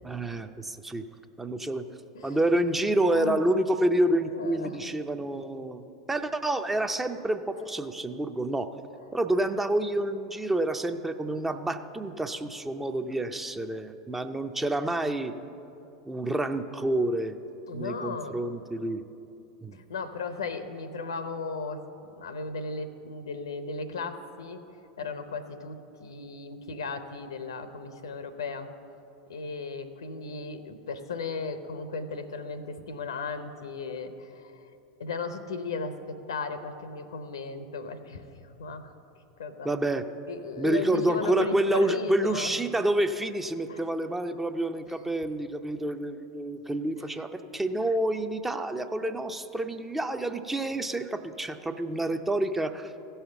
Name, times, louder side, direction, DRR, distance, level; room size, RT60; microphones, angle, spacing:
voice 1, 0.0-1.0 1.4-1.8 2.2-5.8 6.1-8.7 9.1-15.3 16.1-17.4 17.7-19.0 19.6-19.8 39.6-40.0 40.6-52.9, right 1 dB, 10° right, 8 dB, 0.5 m, -28 dB
voice 2, 4.3-4.8 17.7-18.4 19.7-21.8 22.2-24.6 25.0-28.7 29.3-34.6 35.0-38.9 39.4-39.7 40.3-42.6 43.7-43.8 44.9-45.0 47.0-47.1, left 4 dB, 75° left, 11 dB, 0.7 m, -36 dB
15.5 x 5.7 x 6.7 m, 2.8 s
figure-of-eight pair, 85°, 2 cm